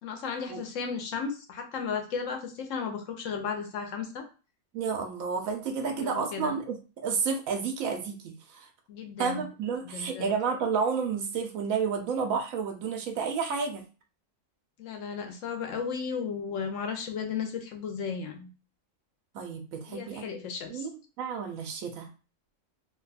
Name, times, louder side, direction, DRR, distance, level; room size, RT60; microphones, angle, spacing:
voice 1, 0.0-4.2 5.9-6.5 8.9-9.5 9.8-10.3 14.8-18.5 19.9-20.9, left 6 dB, 70° left, 5 dB, 1.0 m, -34 dB
voice 2, 4.7-8.7 9.2-13.8 19.3-20.4 20.7-20.9 21.2-22.1, right 5 dB, 85° right, 3 dB, 1.0 m, -31 dB
2.8 x 2.2 x 4.0 m, 0.34 s
omnidirectional pair, 1.4 m